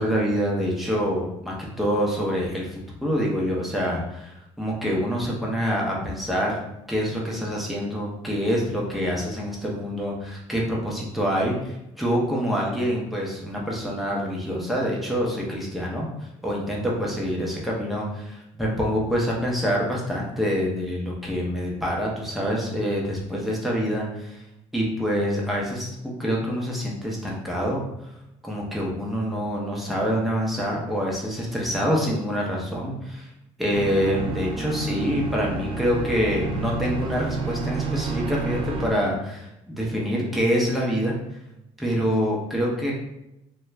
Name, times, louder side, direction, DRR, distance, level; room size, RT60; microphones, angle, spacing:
voice 1, 0.0-6.6 6.9-16.1 16.4-18.2 18.6-24.4 24.7-27.8 28.4-33.3 33.6-41.2 41.8-42.9, equal, ahead, -3 dB, 0.7 m, -26 dB
sound 1, 33.7-38.9, right 3 dB, 45° right, 0.4 m, -30 dB
2.4 x 2.2 x 3.1 m, 0.87 s
cardioid pair, 120°, 12 cm